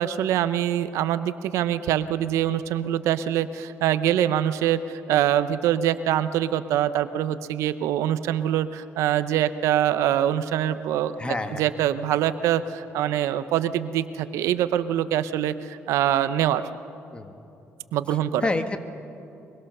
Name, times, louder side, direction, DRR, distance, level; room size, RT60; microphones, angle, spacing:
voice 1, 0.0-16.6 17.9-18.5, right 11 dB, 90° right, 13 dB, 0.8 m, -24 dB
voice 2, 11.2-11.6 17.1-17.3 18.4-18.9, left 2 dB, 20° left, 8 dB, 1.5 m, -28 dB
24.0 x 23.0 x 6.8 m, 2.8 s
cardioid pair, 105°, 5 cm